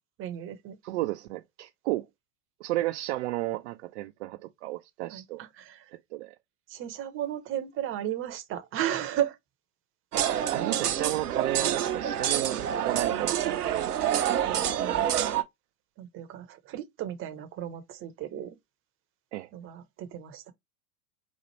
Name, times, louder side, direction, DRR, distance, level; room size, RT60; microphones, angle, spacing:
voice 1, 0.2-0.8 5.1-5.9 6.7-9.4 12.5-12.8 13.1-13.4 14.3-15.1 16.0-18.6 19.5-20.5, right 11 dB, 30° right, 0.8 m, -35 dB
voice 2, 0.8-2.1 2.6-5.4 6.1-6.3 10.2-12.6 12.8-13.9 19.3-19.5, right 17 dB, 50° right, 0.5 m, -33 dB
sound 1, 10.1-15.4, right 10 dB, 80° right, 0.8 m, -27 dB
4.1 x 2.4 x 3.0 m
hypercardioid pair, 95°, 45 cm